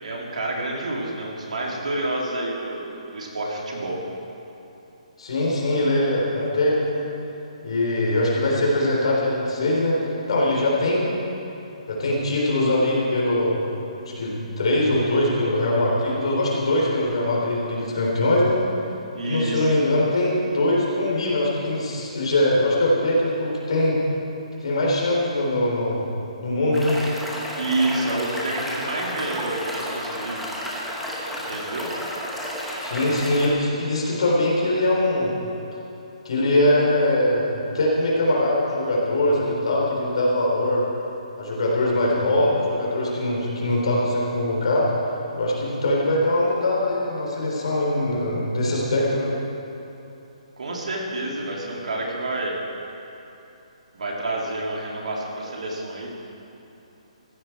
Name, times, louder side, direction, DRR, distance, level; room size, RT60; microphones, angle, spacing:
voice 1, 0.0-4.0 19.1-19.7 27.6-30.5 31.3-31.9 50.6-52.5 53.9-56.1, right 2 dB, 75° right, -2 dB, 3.1 m, -28 dB
voice 2, 5.2-7.1 7.6-10.0 10.3-11.1 11.9-13.6 14.0-18.6 19.2-24.0 24.6-26.1 26.4-27.0 32.8-35.3 36.2-37.5 37.7-40.8 41.4-44.9 45.3-49.3, left 1 dB, 50° left, -3 dB, 3.8 m, -22 dB
sound 1, 26.7-33.5, equal, ahead, 1.0 m, -32 dB
15.0 x 13.0 x 4.6 m, 2.9 s
hypercardioid pair, 180°, 4 cm